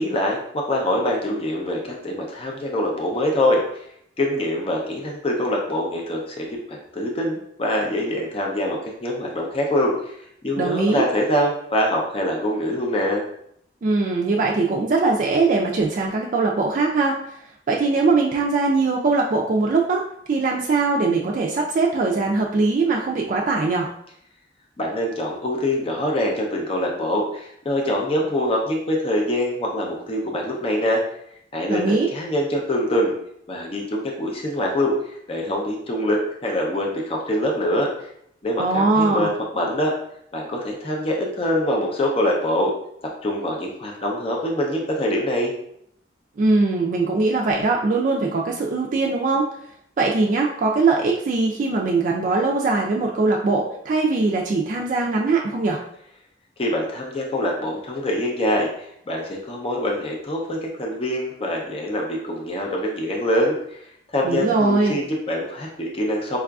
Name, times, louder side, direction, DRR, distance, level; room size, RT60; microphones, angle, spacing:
voice 1, 0.0-3.8 4.2-10.2 10.4-13.3 24.8-31.0 31.5-33.1 33.5-37.9 38.4-39.9 40.3-42.7 43.2-45.5 56.6-58.7 59.1-63.8 64.1-66.4, left 1 dB, 35° left, 0 dB, 0.5 m, -24 dB
voice 2, 10.6-11.1 13.8-17.4 17.7-20.0 20.3-23.9 31.7-32.1 38.6-39.3 46.4-49.4 50.0-55.8 64.2-65.0, right 3 dB, 45° right, -1 dB, 0.3 m, -21 dB
4.6 x 2.4 x 2.3 m, 0.70 s
head